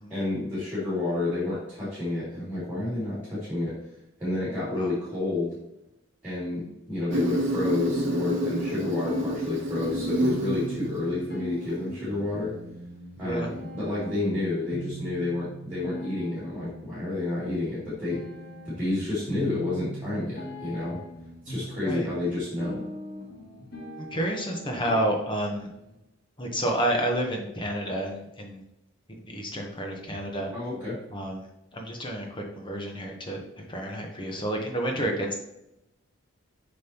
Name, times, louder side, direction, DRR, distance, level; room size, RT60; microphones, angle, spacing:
voice 1, 0.1-3.7 4.2-5.5 6.2-12.5 13.2-18.2 18.6-21.0 21.4-22.8 30.5-31.0, left 2 dB, 10° right, -9 dB, 2.6 m, -30 dB
Insect, 7.1-12.1, right 1 dB, 55° right, 1.0 m, -29 dB
sound 1, 8.0-25.9, right 1 dB, 50° left, 2.0 m, -40 dB
voice 2, 13.2-13.5 21.8-22.1 24.0-25.7 26.4-28.6 29.3-30.5 31.1-31.4 31.7-33.4 33.7-35.3, right 1 dB, 20° left, 1 dB, 1.0 m, -30 dB
7.3 x 5.4 x 3.0 m, 0.85 s
head